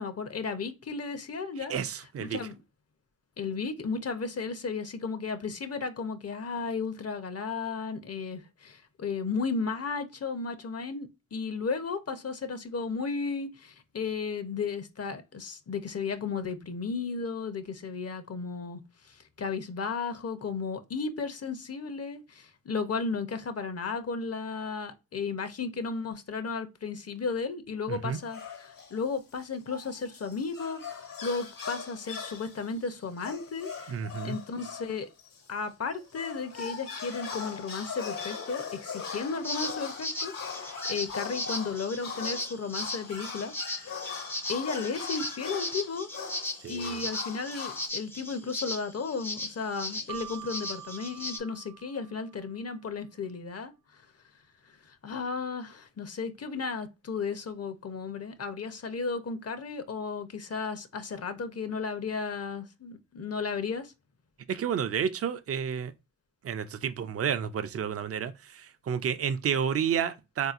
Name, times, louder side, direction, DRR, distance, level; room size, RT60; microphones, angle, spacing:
voice 1, 0.0-1.7 2.2-2.5 3.4-34.0 34.2-35.1 35.5-43.5 44.5-46.1 46.7-53.7 54.9-63.9, left 4 dB, 50° left, 0.6 m, -34 dB
voice 2, 1.7-2.4 27.9-28.2 33.9-34.4 46.6-47.0 64.5-65.9 66.4-70.5, right 7 dB, 45° right, 0.4 m, -30 dB
sound 1, 28.1-29.0 29.4-35.5 35.9-47.9, left 6 dB, 75° left, 1.2 m, -40 dB
sound 2, 39.4-51.4, left 1 dB, 5° left, 0.5 m, -37 dB
Keyboard (musical), 50.1-52.6, right 11 dB, 90° right, 0.6 m, -45 dB
3.9 x 2.7 x 2.4 m
cardioid pair, 75°, 33 cm